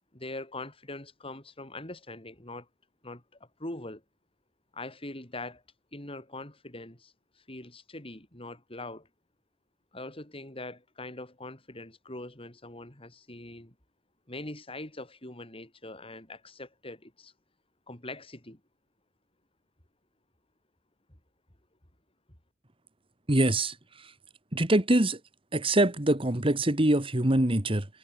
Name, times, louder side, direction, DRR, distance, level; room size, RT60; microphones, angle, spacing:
voice 1, 0.1-2.7 3.0-3.2 3.6-4.0 4.7-5.6 5.9-9.1 9.9-13.7 14.3-17.3 17.9-18.6, left 2 dB, 30° left, 5.6 m, -42 dB
voice 2, 23.3-23.7 24.5-25.2 25.5-27.9, right 1 dB, 30° right, 1.8 m, -24 dB
head